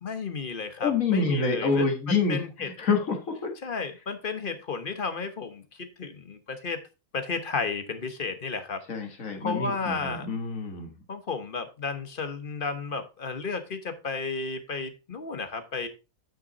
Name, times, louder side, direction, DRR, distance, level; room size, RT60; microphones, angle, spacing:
voice 1, 0.0-2.7 3.6-6.8 7.1-8.8 9.4-10.3 11.1-15.9, left 4 dB, 40° left, 9 dB, 1.2 m, -33 dB
voice 2, 0.8-2.4 2.8-3.5 8.9-10.9, left 4 dB, 65° left, 4 dB, 1.9 m, -27 dB
9.0 x 5.9 x 3.9 m, 0.30 s
omnidirectional pair, 1.5 m